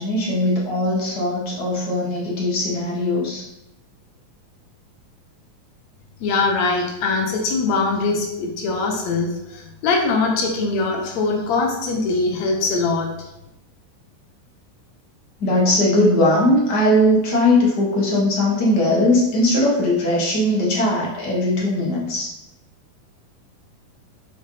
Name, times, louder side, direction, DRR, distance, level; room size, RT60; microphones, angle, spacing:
voice 1, 0.0-3.4 15.4-22.3, left 1 dB, 45° left, -5 dB, 1.5 m, -19 dB
voice 2, 6.2-13.1, left 3 dB, 70° left, 2 dB, 1.8 m, -22 dB
6.2 x 5.2 x 3.3 m, 0.89 s
omnidirectional pair, 3.8 m